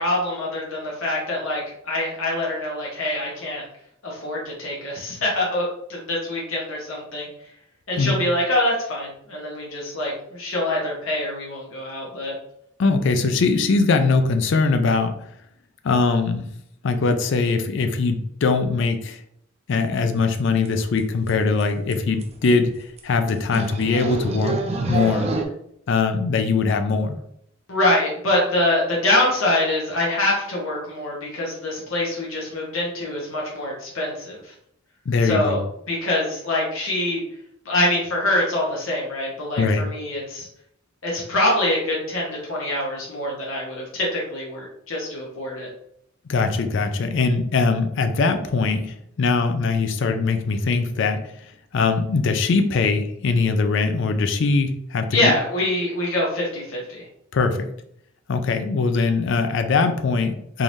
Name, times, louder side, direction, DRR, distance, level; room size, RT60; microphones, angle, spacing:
voice 1, 0.0-3.6 4.0-7.3 7.9-12.3 27.7-34.5 35.2-35.6 35.9-37.2 37.6-40.5 41.0-45.7 55.1-57.1, left 1 dB, 75° left, -4 dB, 1.1 m, -24 dB
voice 2, 12.8-15.1 15.8-16.4 16.8-19.2 19.7-24.6 24.9-25.3 25.9-27.2 35.1-35.6 39.6-39.8 46.3-51.2 51.7-55.3 57.3-57.7 58.3-60.6, left 4 dB, 60° left, 8 dB, 0.4 m, -21 dB
sound 1, 20.3-20.4 20.7-21.0 21.3-21.4 21.6-21.7 21.9-22.0 22.2-22.5 23.0-23.1 23.5-25.4, right 3 dB, 30° right, 0.4 m, -27 dB
3.7 x 3.1 x 2.6 m, 0.72 s
head